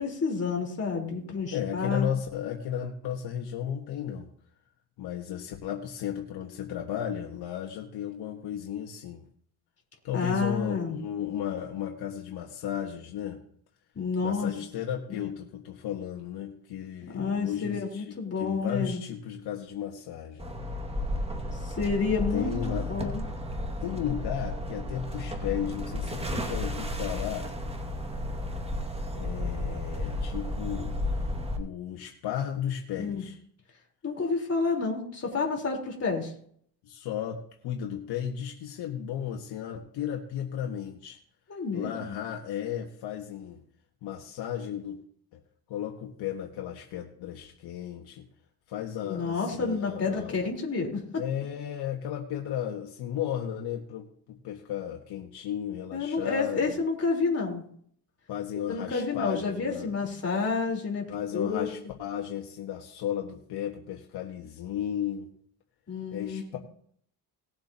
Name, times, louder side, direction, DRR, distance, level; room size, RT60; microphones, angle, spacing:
voice 1, 0.0-2.1 10.1-11.0 14.0-14.5 15.1-15.2 17.1-19.0 21.6-23.2 33.0-33.2 34.0-36.3 41.5-41.9 49.0-51.2 55.9-57.6 58.7-61.1 61.3-61.7 65.9-66.6, left 4 dB, 35° left, 0 dB, 4.1 m, -29 dB
voice 2, 1.5-4.3 5.0-9.2 10.0-13.4 14.2-20.5 22.3-23.0 23.8-27.5 29.1-31.0 31.6-33.4 36.8-41.2 41.7-43.6 44.0-45.0 45.3-45.4 45.7-48.3 48.7-50.3 51.1-56.8 58.3-59.9 61.1-65.3 66.1-66.6, left 9 dB, 70° left, 1 dB, 1.6 m, -34 dB
sound 1, 20.4-31.6, left 1 dB, 15° right, 2.1 m, -33 dB
19.0 x 7.7 x 2.9 m, 0.62 s
supercardioid pair, 75°, 41 cm